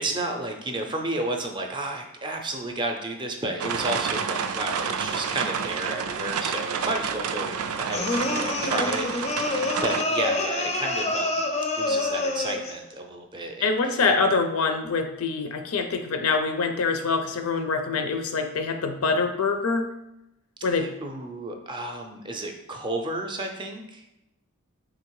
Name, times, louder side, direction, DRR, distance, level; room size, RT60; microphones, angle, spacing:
voice 1, 0.0-11.4 11.8-14.0 20.8-24.0, right 2 dB, 20° right, 3 dB, 0.5 m, -32 dB
sound 1, 3.6-10.0, right 6 dB, 85° right, 0.4 m, -29 dB
sound 2, 7.9-12.8, left 2 dB, 30° left, 0.5 m, -27 dB
voice 2, 13.6-19.9 20.6-20.9, left 4 dB, 80° left, 7 dB, 0.5 m, -25 dB
3.7 x 2.8 x 4.6 m, 0.89 s
head